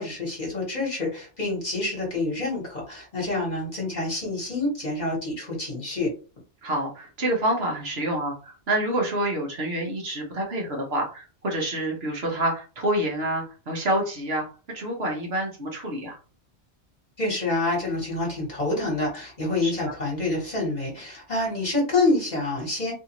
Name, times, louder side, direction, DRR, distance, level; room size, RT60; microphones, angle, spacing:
voice 1, 0.0-6.1 17.2-22.9, left 2 dB, 40° left, -4 dB, 1.5 m, -27 dB
voice 2, 6.6-14.5 14.7-16.2 19.6-19.9, right 1 dB, 65° right, -1 dB, 1.3 m, -27 dB
3.3 x 2.6 x 3.0 m, 0.36 s
omnidirectional pair, 1.2 m